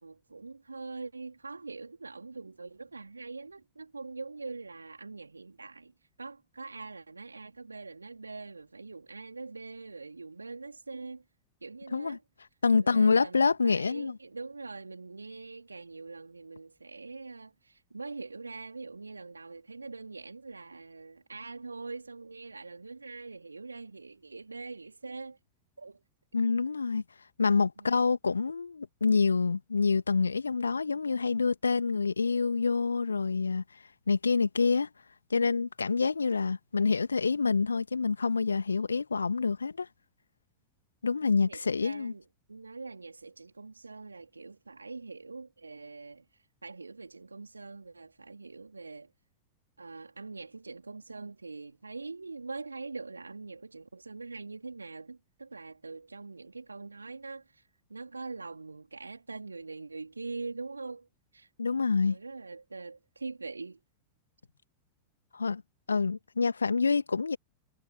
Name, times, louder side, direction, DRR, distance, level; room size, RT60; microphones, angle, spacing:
voice 1, 0.0-5.9 6.2-11.2 11.6-12.2 12.7-25.4 25.8-26.0 27.8-27.9 41.4-49.1 49.8-61.5 62.1-63.8, right 3 dB, 80° right, 3.8 m, -43 dB
voice 2, 12.6-14.2 26.3-27.0 27.4-33.6 34.1-34.9 35.3-39.9 41.0-42.1 61.6-62.2 65.3-65.6 65.9-67.4, left 4 dB, 75° left, 2.1 m, -27 dB
figure-of-eight pair, 90°, 0 cm